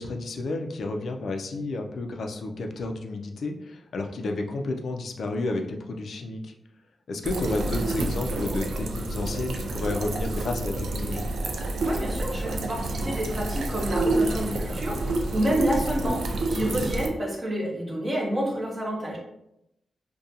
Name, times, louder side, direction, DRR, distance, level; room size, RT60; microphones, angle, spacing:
voice 1, 0.0-6.5 7.1-11.3, left 2 dB, 75° left, 3 dB, 0.3 m, -31 dB
sound 1, 7.2-17.1, right 2 dB, 90° right, 0.3 m, -28 dB
voice 2, 11.8-19.2, right 1 dB, 25° right, -1 dB, 0.7 m, -29 dB
2.4 x 2.2 x 2.7 m, 0.83 s
wide cardioid pair, 95°, 0 cm